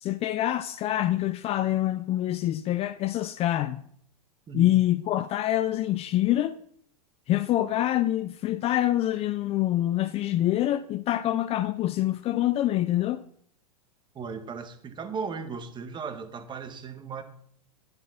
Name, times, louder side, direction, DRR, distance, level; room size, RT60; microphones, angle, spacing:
voice 1, 0.0-3.8 4.5-6.6 7.3-13.2, left 13 dB, 30° left, 0.6 m, -26 dB
voice 2, 4.5-4.8 14.2-17.2, right 5 dB, 20° right, 1.9 m, -36 dB
11.5 x 8.6 x 5.9 m
hypercardioid pair, 120°, 20 cm